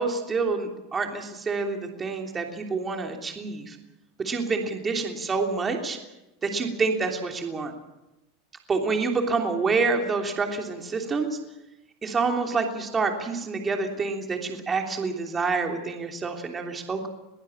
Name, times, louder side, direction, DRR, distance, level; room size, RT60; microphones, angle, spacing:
voice 1, 0.0-3.8 4.2-6.0 6.4-7.7 8.7-11.4 12.0-17.1, right 4 dB, 20° right, 3 dB, 3.2 m, -27 dB
22.0 x 15.5 x 8.8 m, 0.97 s
supercardioid pair, 125°, 0 cm